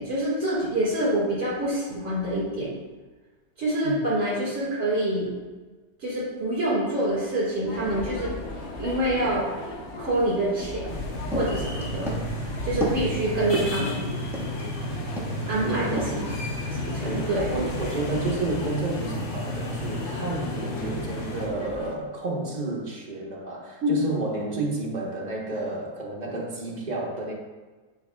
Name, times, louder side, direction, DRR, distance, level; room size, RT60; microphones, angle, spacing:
voice 1, 0.0-2.7 3.6-5.3 6.0-8.3 8.8-9.5 10.0-10.8 11.3-12.2 12.6-14.1 15.5-16.2 16.7-17.5 23.8-23.9, right 1 dB, 50° right, -9 dB, 2.1 m, -26 dB
sound 1, 7.7-22.0, left 2 dB, 50° left, 1.1 m, -37 dB
sound 2, 10.6-14.8 15.2-15.6 16.0-16.2, right 1 dB, ahead, 1.3 m, -32 dB
sound 3, 10.9-21.5, left 1 dB, 85° left, 1.8 m, -33 dB
voice 2, 15.6-16.3 17.0-27.3, right 2 dB, 30° right, -3 dB, 1.1 m, -31 dB
9.5 x 4.7 x 2.3 m, 1.3 s
omnidirectional pair, 1.6 m